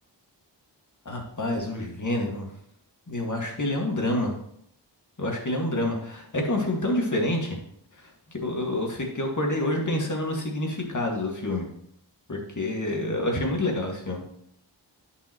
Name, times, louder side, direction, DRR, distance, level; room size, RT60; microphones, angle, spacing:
voice 1, 1.1-2.5 3.1-4.3 5.2-7.6 8.0-11.7 12.3-14.2, left 1 dB, 45° left, 1 dB, 2.0 m, -28 dB
10.5 x 5.4 x 3.0 m, 0.70 s
wide cardioid pair, 60°, 43 cm